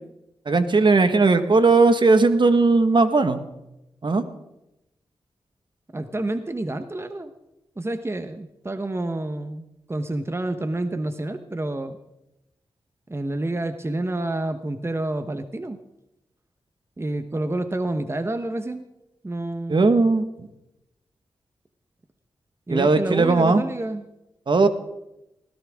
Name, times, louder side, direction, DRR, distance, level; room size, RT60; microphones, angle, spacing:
voice 1, 0.4-3.4 4.0-4.2 19.7-20.2 22.7-23.6 24.5-24.7, right 3 dB, 55° right, 9 dB, 1.6 m, -18 dB
voice 2, 5.9-7.3 7.8-12.0 13.1-15.8 17.0-18.8 19.2-20.1 22.7-24.0, right 2 dB, 25° right, 9 dB, 1.2 m, -29 dB
19.5 x 16.5 x 3.7 m, 0.89 s
cardioid pair, 45°, 10 cm